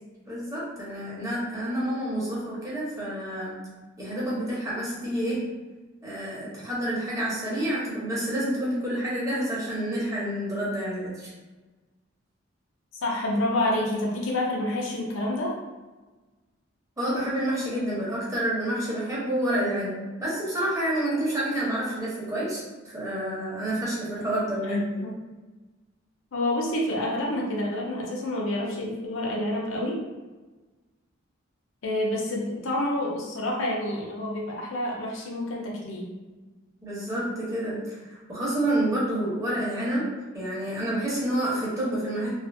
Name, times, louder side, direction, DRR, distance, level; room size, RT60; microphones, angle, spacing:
voice 1, 0.3-3.5 4.0-5.5 6.0-11.3 17.0-19.9 20.2-22.6 22.9-25.1 36.8-42.3, right 1 dB, 15° right, -7 dB, 0.8 m, -28 dB
voice 2, 12.9-15.5 24.6-25.1 26.3-30.0 31.8-36.1, left 1 dB, 80° left, -3 dB, 0.6 m, -28 dB
2.5 x 2.5 x 2.5 m, 1.2 s
head